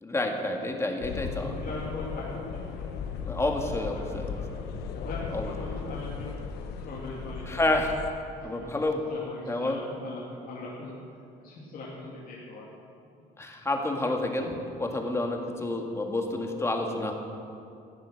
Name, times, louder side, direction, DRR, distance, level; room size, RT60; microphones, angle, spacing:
voice 1, 0.0-1.5 3.3-4.4 5.3-5.5 7.5-7.9 8.4-9.0 9.5-9.8 13.4-17.1, left 2 dB, 15° left, 3 dB, 1.9 m, -29 dB
sound 1, 1.0-8.1, left 6 dB, 80° left, 1.2 m, -37 dB
voice 2, 1.0-2.4 2.7-2.9 3.7-3.8 4.1-4.7 5.0-6.3 6.8-7.6 8.4-8.7 9.1-10.9 11.4-12.7, left 2 dB, 60° left, -5 dB, 2.6 m, -40 dB
14.5 x 10.5 x 6.6 m, 2.5 s
cardioid pair, 110°, 17 cm